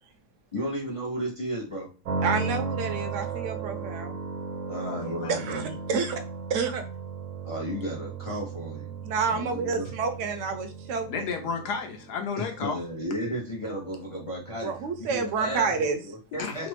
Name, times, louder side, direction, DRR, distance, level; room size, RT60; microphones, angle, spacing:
voice 1, 0.5-1.9 4.7-5.7 7.4-8.9 9.3-9.9 12.4-14.7 15.0-16.7, equal, 50° left, 0.3 m, -34 dB
sound 1, 2.0-15.9, right 4 dB, 80° right, 1.3 m, -36 dB
voice 2, 2.2-4.2 5.3-6.2 6.5-6.8 9.0-11.3 14.6-16.0, right 5 dB, 65° right, 0.8 m, -29 dB
voice 3, 4.9-5.3 11.1-12.8 16.4-16.7, left 5 dB, 80° left, 1.2 m, -32 dB
3.2 x 2.0 x 3.1 m
omnidirectional pair, 1.7 m